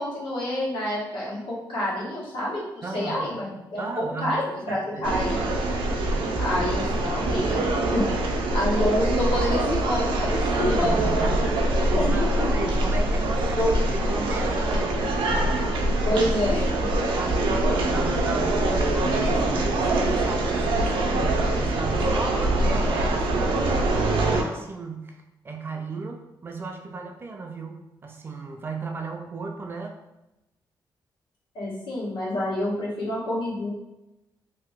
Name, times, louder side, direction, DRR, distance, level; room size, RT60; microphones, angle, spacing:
voice 1, 0.0-5.5 6.4-7.6 7.9-8.0 8.5-11.4 11.7-12.7 13.6-13.7 16.0-16.7 16.9-17.0 31.5-33.7, left 1 dB, 75° left, -6 dB, 1.3 m, -28 dB
voice 2, 2.8-3.4 3.8-4.4 4.7-5.1 10.5-15.6 16.1-16.2 17.1-23.7 24.2-29.9, right 3 dB, 25° right, 2 dB, 0.3 m, -35 dB
sound 1, 5.0-24.4, right 2 dB, 85° right, 0.5 m, -24 dB
2.8 x 2.6 x 3.5 m, 0.94 s
wide cardioid pair, 175°, 8 cm